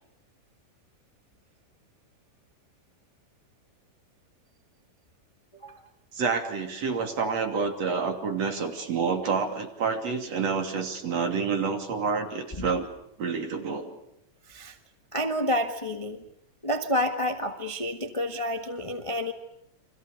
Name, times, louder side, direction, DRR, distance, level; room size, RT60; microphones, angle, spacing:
voice 1, 6.1-12.9 13.2-14.0, right 5 dB, 55° right, 4 dB, 3.9 m, -28 dB
voice 2, 15.1-16.2 16.6-19.3, left 1 dB, 30° left, 5 dB, 0.6 m, -29 dB
30.0 x 24.5 x 6.6 m, 0.77 s
omnidirectional pair, 3.7 m